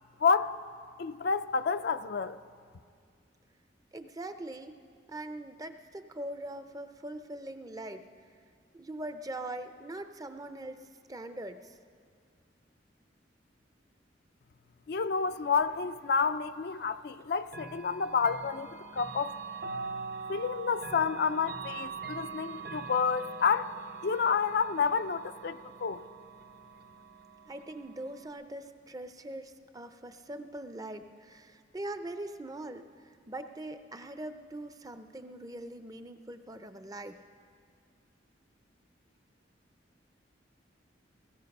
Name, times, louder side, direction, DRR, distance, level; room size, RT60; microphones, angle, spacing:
voice 1, 0.2-0.6 1.0-2.4 14.9-19.4 20.3-23.7 24.0-26.0, left 5 dB, 60° left, 0.4 m, -29 dB
voice 2, 3.9-4.8 5.1-8.0 8.7-11.7 27.5-37.2, right 1 dB, 20° right, 0.6 m, -42 dB
Chime / Clock, 17.5-28.3, right 5 dB, 60° right, 0.8 m, -43 dB
17.0 x 16.0 x 5.4 m
head